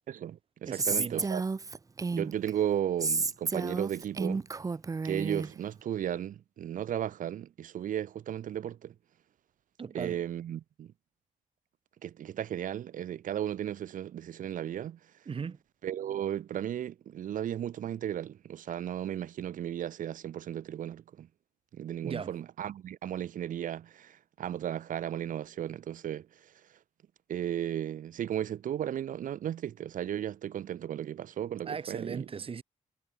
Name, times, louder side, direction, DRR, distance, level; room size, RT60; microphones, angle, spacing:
voice 1, 0.1-1.4 2.1-4.4 5.0-8.9 9.9-10.9 12.0-15.0 15.8-21.3 21.7-26.5 27.3-32.3, right 10 dB, 75° right, 1.7 m, -35 dB
voice 2, 0.6-1.3 9.8-10.2 15.3-15.6 22.0-22.3 31.6-32.6, right 6 dB, 45° right, 5.9 m, -38 dB
Female speech woman speaking, 0.8-2.5 3.0-5.5, right 4 dB, 25° right, 0.9 m, -31 dB
cardioid pair, 125°, 14 cm